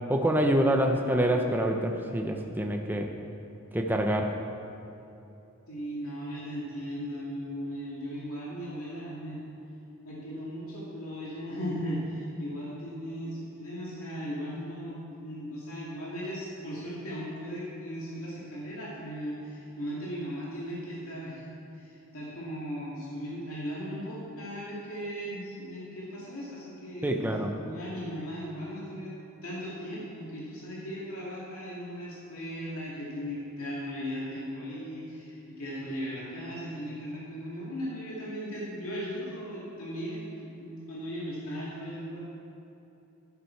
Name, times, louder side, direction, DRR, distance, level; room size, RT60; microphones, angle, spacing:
voice 1, 0.1-3.1 3.7-4.4 27.0-27.5, right 1 dB, 10° right, 2 dB, 0.7 m, -26 dB
voice 2, 5.7-9.4 10.0-21.5 21.7-27.2 27.6-29.1 29.4-42.2, equal, 75° left, -7 dB, 2.4 m, -37 dB
12.5 x 11.0 x 4.7 m, 2.9 s
head